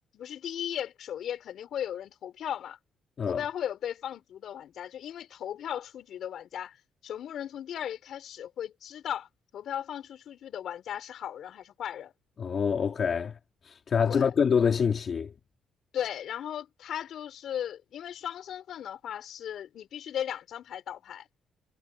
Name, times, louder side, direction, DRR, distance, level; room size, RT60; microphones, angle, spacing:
voice 1, 0.1-2.8 3.3-6.8 7.0-12.1 14.0-14.3 15.9-21.3, left 10 dB, 70° left, 5.5 m, -36 dB
voice 2, 12.4-13.4 13.6-15.3, left 6 dB, 50° left, 2.2 m, -26 dB
cardioid pair, 90°, 0 cm